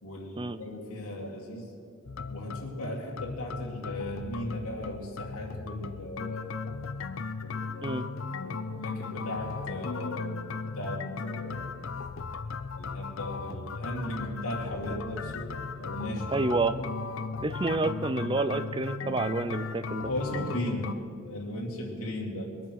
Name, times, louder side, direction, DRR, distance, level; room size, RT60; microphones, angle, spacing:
voice 1, 0.0-1.7 2.3-6.9 7.4-8.0 8.3-11.7 12.7-15.5 15.7-16.4 20.0-22.6, left 1 dB, 90° left, -2 dB, 2.3 m, -37 dB
sound 1, 2.0-20.9, left 4 dB, 60° left, 0.5 m, -37 dB
voice 2, 16.3-16.8 17.4-20.1, right 3 dB, 20° right, 12 dB, 0.5 m, -29 dB
21.5 x 8.8 x 6.4 m, 2.4 s
head